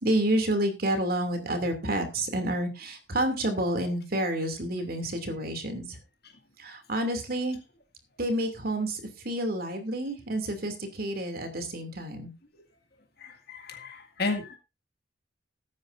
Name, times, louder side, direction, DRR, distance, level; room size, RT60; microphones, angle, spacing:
voice 1, 0.0-5.8 6.6-7.6 8.2-12.3, right 1 dB, 55° right, 6 dB, 2.7 m, -29 dB
voice 2, 13.2-14.6, left 3 dB, 60° left, 4 dB, 2.1 m, -33 dB
19.0 x 9.5 x 2.6 m, 0.25 s
head